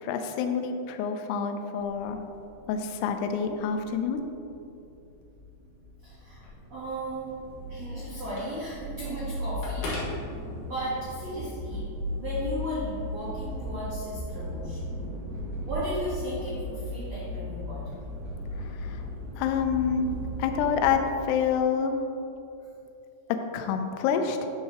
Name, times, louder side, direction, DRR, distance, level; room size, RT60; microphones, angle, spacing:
voice 1, 0.0-2.2 2.7-4.2 18.6-19.0 19.4-20.1 20.4-21.9 23.5-24.5, left 6 dB, 85° left, 6 dB, 2.3 m, -27 dB
sound 1, 1.8-20.9, left 1 dB, 70° right, 3.2 m, -37 dB
voice 2, 6.0-7.3 7.7-9.9 10.6-11.8 12.1-15.0 15.6-18.0, equal, 90° right, -9 dB, 1.4 m, -35 dB
Telephone, 6.2-11.0, left 1 dB, 60° left, 3.3 m, -41 dB
10.5 x 5.7 x 2.9 m, 2.7 s
omnidirectional pair, 5.3 m